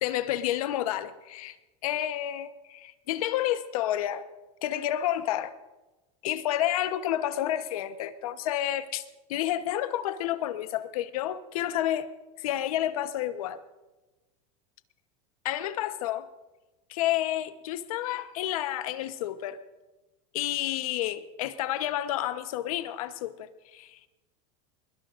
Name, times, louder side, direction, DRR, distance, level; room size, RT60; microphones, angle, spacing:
voice 1, 0.0-1.6 1.8-4.3 4.6-5.5 6.2-9.0 9.3-12.1 12.4-13.6 15.4-16.3 16.9-19.6 20.3-24.0, left 12 dB, 85° left, 1.0 m, -30 dB
23.0 x 21.5 x 2.5 m
supercardioid pair, 140°, 18 cm